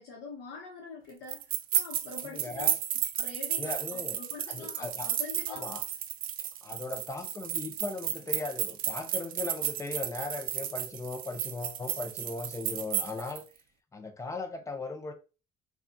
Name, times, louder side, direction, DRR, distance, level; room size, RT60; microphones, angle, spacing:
voice 1, 0.0-1.4 1.7-2.7 3.2-5.7, left 4 dB, 85° left, 0.9 m, -44 dB
sound 1, 1.3-13.4, right 10 dB, 60° right, 0.4 m, -33 dB
voice 2, 2.2-2.8 3.6-4.2 4.5-5.1 5.5-5.8 6.6-13.5 13.9-15.1, left 3 dB, 20° left, 0.5 m, -38 dB
2.7 x 2.3 x 2.6 m
cardioid pair, 110°, 17 cm